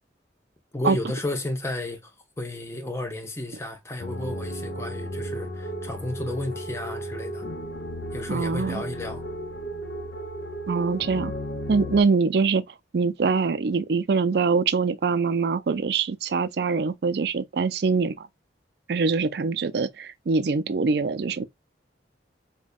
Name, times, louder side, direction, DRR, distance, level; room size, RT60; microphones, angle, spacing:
voice 1, 0.7-7.5 8.1-9.2, left 1 dB, 15° left, 0.7 m, -33 dB
sound 1, 4.0-12.0, equal, 65° left, 0.6 m, -34 dB
voice 2, 8.3-8.8 10.7-11.3 11.7-12.6 12.9-18.3 18.9-21.5, right 4 dB, 65° right, 0.4 m, -24 dB
5.1 x 2.2 x 2.3 m
head